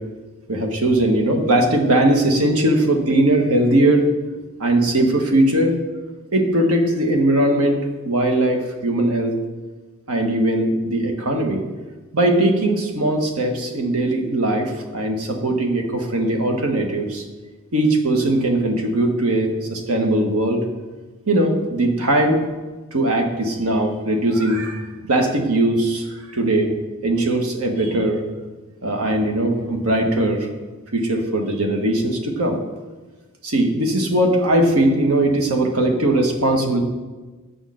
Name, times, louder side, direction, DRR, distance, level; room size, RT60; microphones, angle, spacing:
voice 1, 0.5-4.1 4.6-5.8 6.3-9.4 10.1-11.6 12.1-17.2 17.7-20.6 21.3-22.4 22.9-26.7 27.0-28.2 28.8-30.5 30.9-32.6 33.4-36.8, right 1 dB, 85° right, 3 dB, 1.5 m, -19 dB
8.9 x 6.5 x 6.4 m, 1.3 s
head